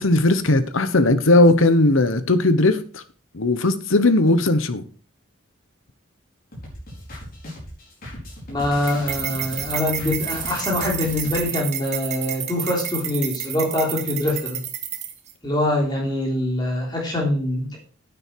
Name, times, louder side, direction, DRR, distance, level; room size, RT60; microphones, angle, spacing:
voice 1, 0.0-3.0 3.3-4.8, left 2 dB, 75° left, 1.1 m, -18 dB
sound 1, 6.5-11.4, left 1 dB, 45° left, 4.9 m, -37 dB
voice 2, 8.5-14.6 15.4-17.8, left 1 dB, 20° left, 3.5 m, -24 dB
sound 2, 8.9-15.3, right 9 dB, 35° right, 1.3 m, -30 dB
9.7 x 9.1 x 4.6 m
head